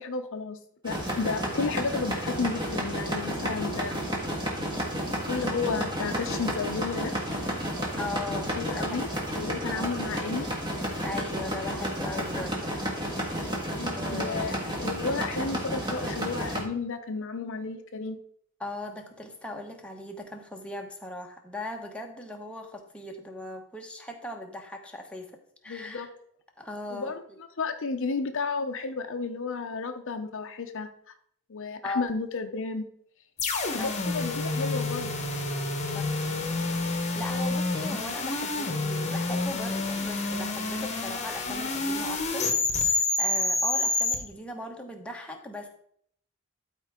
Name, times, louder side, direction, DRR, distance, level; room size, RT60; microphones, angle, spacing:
voice 1, 0.0-4.0 5.3-7.1 8.5-9.1 9.4-10.5 13.8-18.2 25.7-26.1 26.9-27.2 27.6-30.9 31.5-32.8 33.7-35.1, left 4 dB, 60° left, 8 dB, 0.7 m, -32 dB
sound 1, 0.9-16.6, equal, 20° right, 1.6 m, -31 dB
voice 2, 8.0-9.1 9.7-10.0 11.0-12.7 13.9-14.6 18.6-25.3 25.6-26.1 26.6-27.1 31.8-32.1 33.8-33.9 35.9-36.0 37.1-45.7, left 2 dB, 5° left, 1 dB, 1.0 m, -38 dB
sound 2, 33.4-44.2, left 3 dB, 30° left, 1.1 m, -28 dB
12.5 x 4.5 x 3.6 m, 0.65 s
head